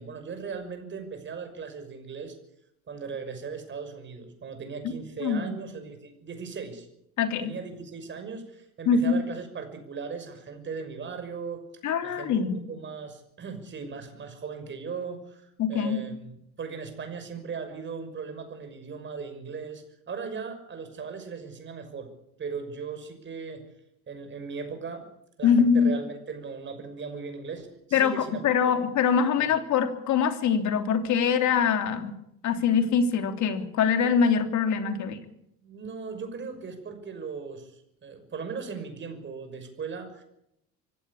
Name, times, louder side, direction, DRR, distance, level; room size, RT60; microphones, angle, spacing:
voice 1, 0.0-2.3 2.9-6.9 7.4-11.6 12.0-16.3 16.6-22.1 22.4-23.6 24.1-25.0 25.4-28.4 29.4-29.5 34.9-35.2 35.6-40.2, right 5 dB, 35° right, 7 dB, 6.0 m, -38 dB
voice 2, 7.2-7.5 8.8-9.1 11.8-12.6 15.6-16.0 25.4-25.9 27.9-32.1 32.4-35.2, left 6 dB, 55° left, 7 dB, 3.2 m, -23 dB
25.0 x 16.0 x 8.5 m, 0.78 s
cardioid pair, 140°, 34 cm